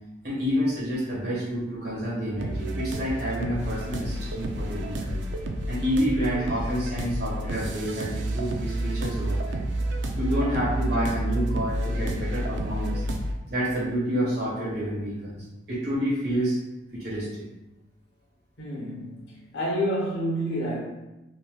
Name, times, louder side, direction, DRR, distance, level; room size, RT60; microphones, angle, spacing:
voice 1, 0.2-5.2 5.7-9.7 10.2-13.0 13.5-16.6 16.9-17.4, equal, 60° right, -6 dB, 1.4 m, -28 dB
sound 1, 2.4-13.3, right 1 dB, 80° right, 0.4 m, -30 dB
voice 2, 18.6-20.8, equal, 85° left, -4 dB, 1.0 m, -29 dB
3.3 x 2.8 x 2.2 m, 0.98 s
head